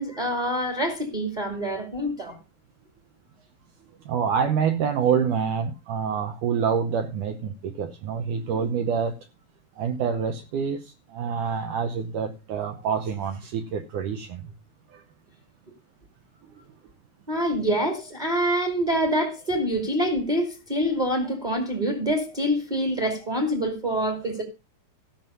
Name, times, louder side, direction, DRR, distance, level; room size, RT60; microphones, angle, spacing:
voice 1, 0.0-2.4 17.3-24.4, equal, 20° right, 1.4 m, -26 dB
voice 2, 4.1-9.2 9.8-14.5 14.9-15.0, right 7 dB, 70° right, 2.0 m, -27 dB
14.5 x 6.1 x 5.4 m
omnidirectional pair, 4.6 m